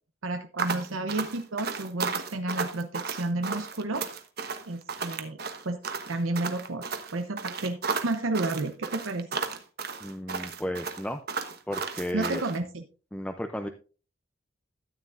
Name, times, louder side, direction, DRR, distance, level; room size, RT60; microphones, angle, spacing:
voice 1, 0.2-4.1 4.7-5.4 5.6-5.8 6.1-6.9 7.1-9.3 12.1-12.8, right 2 dB, 85° right, 6 dB, 0.8 m, -31 dB
sound 1, 0.6-12.6, right 5 dB, 50° right, 1.1 m, -33 dB
voice 2, 10.0-11.2 11.7-12.4 13.1-13.7, equal, 5° left, 5 dB, 0.5 m, -33 dB
13.5 x 9.3 x 2.5 m, 0.36 s
head